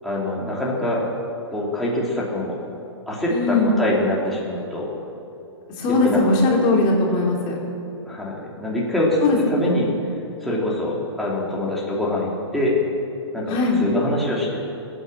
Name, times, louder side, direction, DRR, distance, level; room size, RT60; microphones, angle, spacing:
voice 1, 0.0-1.0 1.5-2.5 3.1-4.9 6.0-6.2 8.1-9.2 9.5-9.9 10.4-12.7 13.3-14.6, left 1 dB, ahead, -7 dB, 2.9 m, -24 dB
voice 2, 3.3-3.7 5.8-7.6 9.2-9.8 13.5-13.8, left 2 dB, 30° left, -1 dB, 3.2 m, -20 dB
19.0 x 8.9 x 7.6 m, 2.9 s
hypercardioid pair, 135°, 15 cm